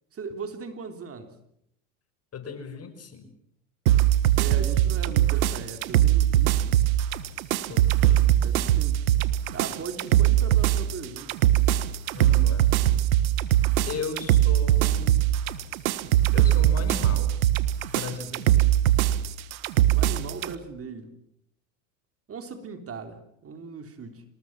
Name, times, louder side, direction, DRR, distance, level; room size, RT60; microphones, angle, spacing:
voice 1, 0.1-1.3 4.4-6.7 8.4-9.2 9.5-11.4 19.9-21.1 22.3-24.2, right 5 dB, 35° right, 8 dB, 3.5 m, -38 dB
voice 2, 2.3-3.3 7.7-8.3 12.1-12.6 13.9-15.2 16.3-17.4 17.9-18.6, left 6 dB, 35° left, 9 dB, 5.4 m, -36 dB
sound 1, 3.9-20.5, right 12 dB, 80° right, 1.5 m, -21 dB
26.5 x 19.5 x 7.5 m, 0.74 s
hypercardioid pair, 90°, 41 cm